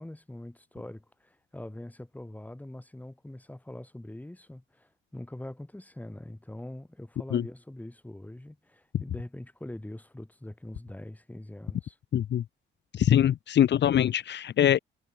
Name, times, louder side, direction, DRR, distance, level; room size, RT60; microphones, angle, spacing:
voice 1, 0.0-12.0, left 1 dB, 10° left, 6.5 m, -43 dB
voice 2, 12.1-12.4 12.9-14.8, left 10 dB, 60° left, 1.6 m, -23 dB
cardioid pair, 90°, 20 cm